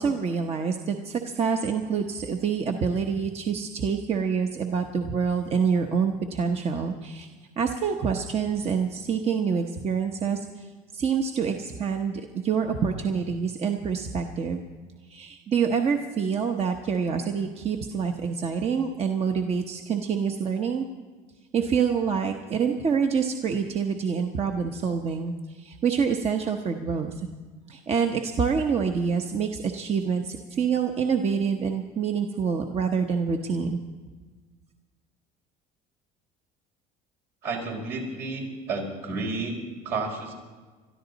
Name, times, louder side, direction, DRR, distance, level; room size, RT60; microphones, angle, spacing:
voice 1, 0.0-7.3 7.6-10.7 10.9-14.7 15.1-20.9 21.5-27.2 27.7-33.8, right 6 dB, 35° right, 4 dB, 1.0 m, -26 dB
voice 2, 37.4-40.3, right 3 dB, 70° right, -1 dB, 5.0 m, -31 dB
22.5 x 13.0 x 4.1 m, 1.4 s
cardioid pair, 115°, 17 cm